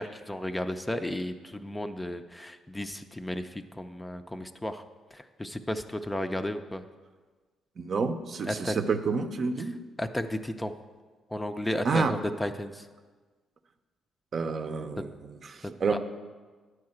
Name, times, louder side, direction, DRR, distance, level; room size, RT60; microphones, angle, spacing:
voice 1, 0.0-4.8 5.1-6.8 8.5-8.8 10.0-10.7 11.3-12.9 15.9-16.0, left 1 dB, 10° left, 8 dB, 0.5 m, -33 dB
voice 2, 7.8-9.8 11.8-12.2 14.3-16.0, right 4 dB, 50° right, 7 dB, 0.7 m, -29 dB
9.7 x 4.7 x 7.8 m, 1.4 s
cardioid pair, 90°, 0 cm